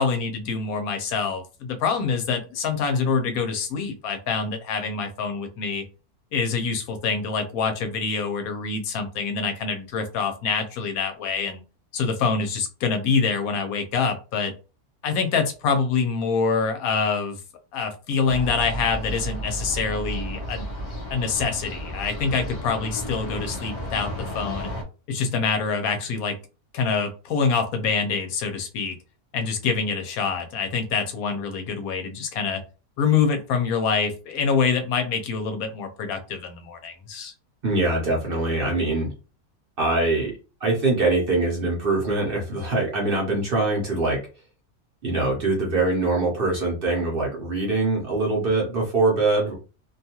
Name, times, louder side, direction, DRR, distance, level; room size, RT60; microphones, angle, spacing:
voice 1, 0.0-5.8 6.3-11.6 11.9-14.5 15.0-17.4 17.7-20.7 21.1-24.1 24.3-24.7 25.1-26.4 26.7-29.0 29.3-32.6 33.0-37.3, left 5 dB, 80° left, 7 dB, 1.1 m, -25 dB
sound 1, 18.2-24.8, equal, 55° left, 0.3 m, -33 dB
voice 2, 37.6-39.1 39.8-40.3 40.6-44.2 45.0-49.6, right 2 dB, 50° right, -1 dB, 0.8 m, -23 dB
2.7 x 2.3 x 2.8 m, 0.33 s
omnidirectional pair, 1.5 m